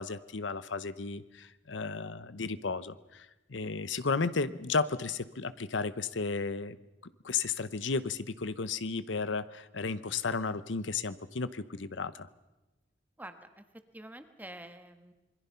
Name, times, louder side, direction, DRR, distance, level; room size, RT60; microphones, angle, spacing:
voice 1, 0.0-6.8 7.0-12.3, left 4 dB, 90° left, 15 dB, 0.9 m, -34 dB
voice 2, 13.2-13.6 13.9-15.1, right 1 dB, 10° right, 8 dB, 1.5 m, -47 dB
26.5 x 22.0 x 5.7 m, 1.1 s
head